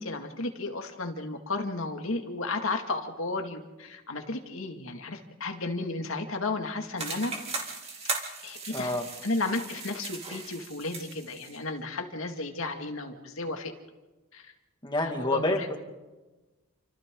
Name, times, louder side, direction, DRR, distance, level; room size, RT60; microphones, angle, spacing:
voice 1, 0.0-7.3 8.4-13.7 14.3-14.5 15.0-15.7, left 2 dB, 75° left, 4 dB, 2.3 m, -33 dB
sound 1, 7.0-11.6, right 3 dB, 30° right, 3.0 m, -37 dB
voice 2, 8.7-9.0 14.8-15.8, left 2 dB, 20° left, 3 dB, 2.2 m, -28 dB
29.0 x 26.0 x 3.9 m, 1.2 s
head